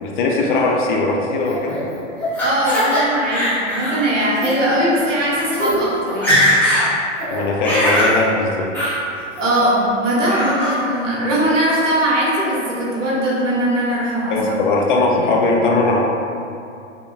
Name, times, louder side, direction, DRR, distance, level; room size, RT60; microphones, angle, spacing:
voice 1, 0.0-1.8 7.3-8.7 14.3-16.0, left 2 dB, 45° left, 0 dB, 0.4 m, -19 dB
Laughter, 1.4-3.0 3.3-4.0 4.3-4.5 5.2-5.3 5.5-5.8 6.1-6.9 7.2-8.1 8.7-8.9 9.4-9.8 10.3-10.7, equal, 5° left, 0.7 m, -20 dB
voice 2, 2.4-6.5 9.4-14.4, right 1 dB, 80° right, -6 dB, 0.9 m, -20 dB
2.7 x 2.1 x 2.3 m, 2.5 s
hypercardioid pair, 115°, 37 cm